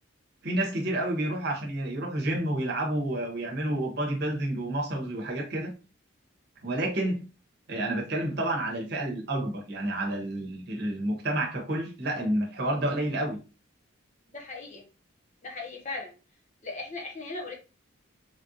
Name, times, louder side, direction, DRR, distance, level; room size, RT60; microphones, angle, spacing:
voice 1, 0.4-5.7 6.6-7.2 7.7-13.4, right 1 dB, 50° right, 0.9 m, -29 dB
voice 2, 14.3-14.8 15.4-16.1 16.6-17.5, left 3 dB, 35° left, 0.8 m, -37 dB
3.3 x 2.4 x 2.7 m
head